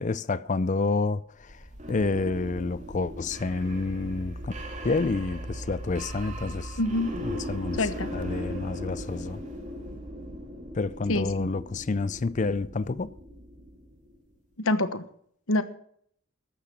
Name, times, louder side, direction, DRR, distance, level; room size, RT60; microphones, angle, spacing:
voice 1, 0.0-1.6 1.9-4.5 4.8-6.8 7.2-7.8 8.1-9.4 10.8-13.1, left 3 dB, 35° left, 0.4 m, -29 dB
sound 1, 1.4-14.2, equal, 35° right, 2.8 m, -38 dB
voice 2, 6.8-7.1 7.7-8.1 11.1-11.5 14.6-15.0 15.5-15.6, left 2 dB, 70° left, 1.2 m, -26 dB
13.5 x 10.5 x 6.1 m
head